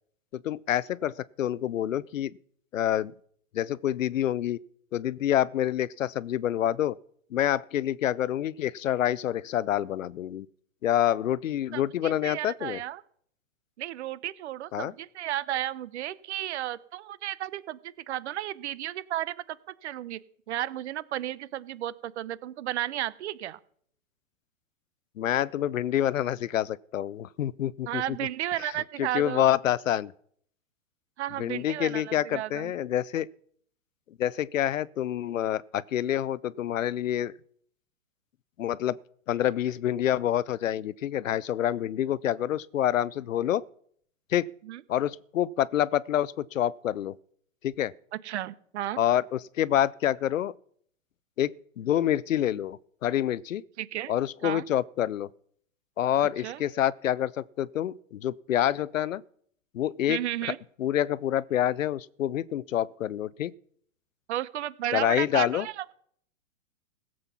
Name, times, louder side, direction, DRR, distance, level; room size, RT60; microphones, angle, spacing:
voice 1, 0.3-2.3 2.7-3.1 3.5-4.6 4.9-7.0 7.3-10.5 10.8-12.8 14.7-14.9 25.2-28.0 29.0-30.1 31.4-33.3 34.2-37.3 38.6-39.0 39.3-43.6 44.3-44.5 44.9-47.2 47.6-47.9 49.0-50.5 51.4-51.5 51.8-53.6 54.1-55.3 56.0-59.2 59.7-60.2 60.8-63.5 64.9-65.7, left 11 dB, 75° left, 0.6 m, -27 dB
voice 2, 11.7-13.0 13.8-19.6 19.8-20.2 20.5-23.6 27.9-29.5 31.2-32.7 44.6-44.8 48.2-49.0 53.8-54.1 54.4-54.6 56.4-56.6 60.1-60.6 64.3-65.9, right 13 dB, 55° right, 0.8 m, -33 dB
16.5 x 7.8 x 5.8 m
hypercardioid pair, 115°, 39 cm